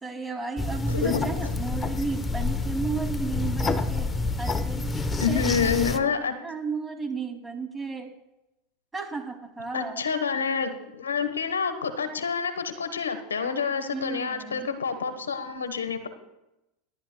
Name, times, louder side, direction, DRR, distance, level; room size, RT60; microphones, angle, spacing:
voice 1, 0.0-4.1 4.4-5.8 6.1-6.2 6.4-8.1 8.9-10.0 13.9-14.7, right 4 dB, 15° right, 3 dB, 2.5 m, -34 dB
sound 1, 0.6-6.0, left 3 dB, 20° left, 0.9 m, -28 dB
voice 2, 0.9-1.5 5.2-6.3 9.7-16.1, left 6 dB, 90° left, 9 dB, 1.1 m, -28 dB
27.5 x 11.5 x 2.2 m, 0.93 s
hypercardioid pair, 90°, 0 cm